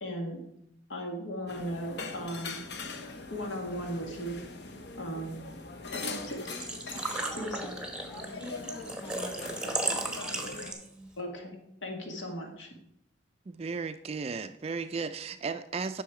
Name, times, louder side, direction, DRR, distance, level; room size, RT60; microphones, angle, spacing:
voice 1, 0.0-0.4 0.9-2.6 3.3-4.4 5.0-5.4 5.9-6.4 6.8-6.9 7.4-7.6 11.2-11.6 11.8-12.7, equal, 75° left, 2 dB, 1.9 m, -36 dB
sound 1, 1.5-10.7, left 4 dB, 60° left, 0.9 m, -42 dB
Engine / Trickle dribble / Fill (with liquid), 6.2-11.1, right 2 dB, 5° right, 0.9 m, -35 dB
voice 2, 6.4-7.8 8.1-10.5, left 1 dB, 20° left, -2 dB, 3.6 m, -46 dB
voice 3, 13.5-16.0, right 4 dB, 30° right, 11 dB, 0.3 m, -35 dB
10.5 x 6.3 x 4.9 m, 0.80 s
head